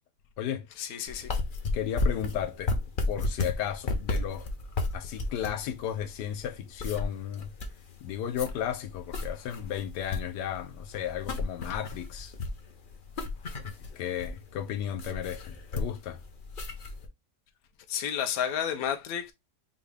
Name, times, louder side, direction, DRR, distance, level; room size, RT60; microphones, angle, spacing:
voice 1, 0.8-1.4 17.9-19.3, left 9 dB, 65° left, 1.2 m, -31 dB
sound 1, 1.1-17.1, left 3 dB, 50° left, 0.6 m, -33 dB
voice 2, 1.7-2.7 3.1-4.5 4.9-7.5 8.0-12.3 14.0-16.2, left 9 dB, 85° left, 1.2 m, -34 dB
5.6 x 2.4 x 3.3 m
omnidirectional pair, 1.8 m